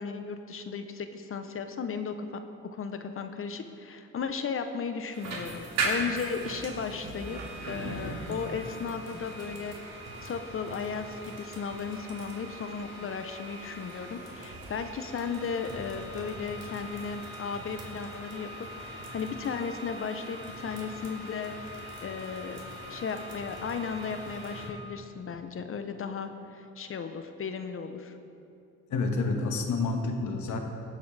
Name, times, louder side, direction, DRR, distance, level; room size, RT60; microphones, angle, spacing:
voice 1, 0.0-2.3 2.6-7.4 7.7-9.8 10.2-18.5 18.8-21.5 22.0-22.6 22.9-28.2, left 5 dB, 45° left, 8 dB, 0.8 m, -35 dB
sound 1, 5.1-24.7, right 2 dB, 60° right, 2.3 m, -39 dB
voice 2, 28.9-30.6, left 3 dB, 75° left, 3 dB, 1.4 m, -29 dB
18.0 x 7.8 x 3.3 m, 2.6 s
cardioid pair, 90°, 30 cm